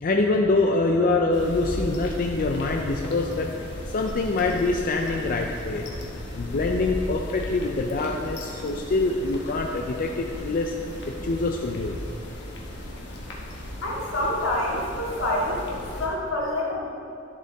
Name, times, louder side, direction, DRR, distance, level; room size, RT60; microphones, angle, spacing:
voice 1, 0.0-3.6 3.9-5.9 6.3-10.7 11.1-12.0, left 3 dB, 45° left, 1 dB, 0.5 m, -25 dB
sound 1, 1.3-16.1, left 1 dB, 60° left, 1.3 m, -36 dB
voice 2, 13.8-16.8, left 1 dB, 80° left, -4 dB, 2.0 m, -27 dB
11.0 x 7.4 x 3.5 m, 2.7 s
head